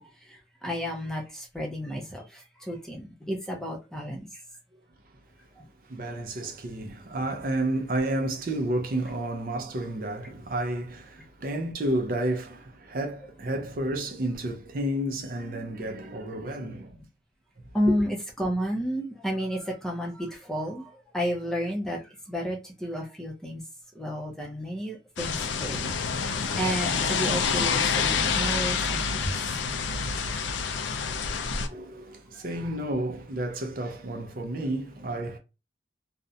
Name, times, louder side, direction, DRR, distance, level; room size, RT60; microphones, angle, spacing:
voice 1, 0.0-4.4 5.6-5.7 17.7-23.6 23.9-25.9 26.6-29.3 31.4-31.5, equal, 5° left, 0.5 m, -31 dB
voice 2, 5.9-17.0 17.8-17.9 31.6-35.4, right 1 dB, 50° right, 0.5 m, -31 dB
sound 1, 25.2-31.7, left 5 dB, 85° left, 0.4 m, -27 dB
2.4 x 2.1 x 2.6 m
head